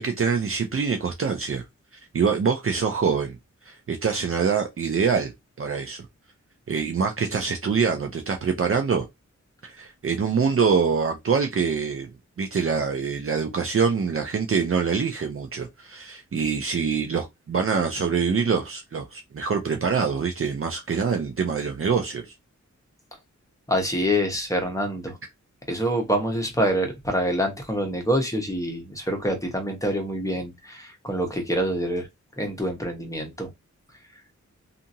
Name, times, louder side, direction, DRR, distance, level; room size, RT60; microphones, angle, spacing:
voice 1, 0.0-1.6 2.1-3.4 3.6-5.3 5.6-6.1 6.7-9.1 9.6-12.1 12.4-22.3, right 5 dB, 45° right, 0.5 m, -25 dB
voice 2, 23.7-25.2 25.7-32.1 32.4-33.5, equal, 10° left, 1.0 m, -26 dB
2.7 x 2.5 x 2.6 m
wide cardioid pair, 95°, 30 cm